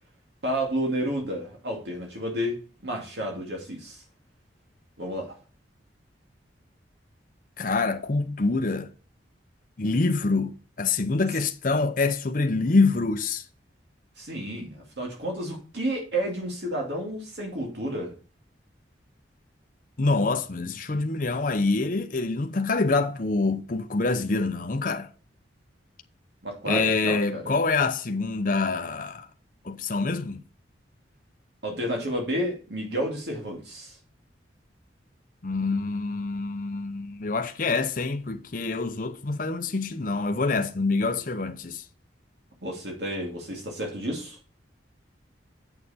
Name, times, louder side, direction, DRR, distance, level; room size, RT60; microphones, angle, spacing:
voice 1, 0.4-4.0 5.0-5.4 14.2-18.1 26.4-27.5 31.6-34.0 42.6-44.4, equal, 65° right, 2.3 m, -31 dB
voice 2, 7.6-8.9 9.8-13.4 20.0-25.1 26.7-29.3 29.6-30.4 35.4-41.8, left 3 dB, 45° left, 0.7 m, -26 dB
7.8 x 6.6 x 4.2 m
head